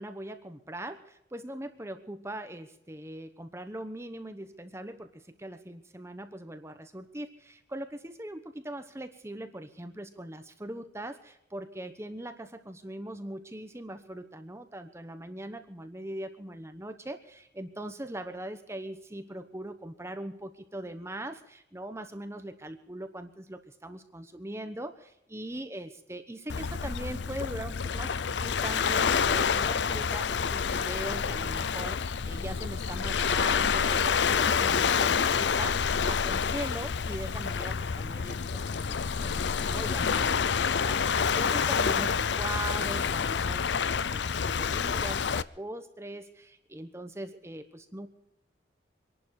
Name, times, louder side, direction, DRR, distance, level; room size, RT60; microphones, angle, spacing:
voice 1, 0.0-43.7 44.0-48.1, right 1 dB, 15° right, 8 dB, 1.0 m, -41 dB
Waves surf, 26.5-45.4, left 6 dB, 65° left, 0.5 m, -28 dB
25.0 x 11.5 x 4.9 m, 0.81 s
head